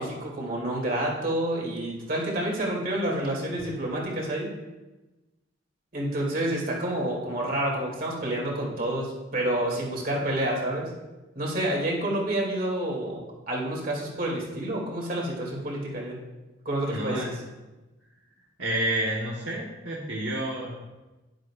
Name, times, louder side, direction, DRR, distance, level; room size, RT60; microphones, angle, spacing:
voice 1, 0.0-4.5 5.9-10.9 11.4-16.2 16.6-17.3, right 1 dB, 50° right, -3 dB, 2.7 m, -29 dB
voice 2, 16.8-17.4 18.6-20.9, right 1 dB, 70° right, -4 dB, 1.3 m, -30 dB
11.0 x 10.5 x 2.5 m, 1.1 s
head